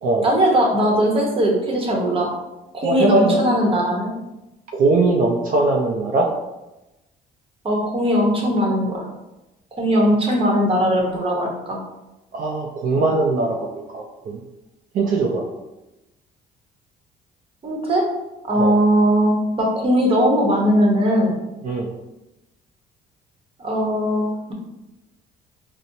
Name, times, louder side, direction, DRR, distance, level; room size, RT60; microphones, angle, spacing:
voice 1, 0.2-2.3 2.7-4.1 7.6-9.1 9.8-11.8 17.6-18.1 18.4-21.4 23.6-24.5, equal, 30° right, -1 dB, 0.9 m, -19 dB
voice 2, 2.8-3.4 4.7-6.3 12.3-13.6 13.9-14.4 14.9-15.5 18.6-18.8 21.6-21.9, right 3 dB, 55° right, 0 dB, 0.5 m, -20 dB
4.2 x 2.1 x 2.6 m, 0.97 s
cardioid pair, 110°, 17 cm